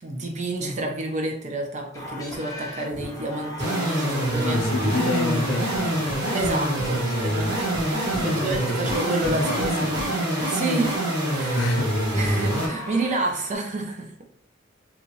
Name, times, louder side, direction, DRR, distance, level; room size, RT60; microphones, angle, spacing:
voice 1, 0.0-5.4 6.3-11.0 11.3-11.6 12.1-14.2, right 2 dB, 35° right, 0.5 m, -29 dB
sound 1, 1.9-8.3 12.2-13.6, left 1 dB, 15° left, 0.4 m, -39 dB
sound 2, 3.6-12.7, right 1 dB, 60° right, 1.1 m, -25 dB
voice 2, 4.4-6.1 8.2-8.7 9.3-9.9 11.5-12.0, left 3 dB, 80° left, 0.4 m, -29 dB
Hammer, 6.1-7.3 7.7-10.4, equal, 90° right, 1.0 m, -37 dB
2.9 x 2.4 x 2.7 m
head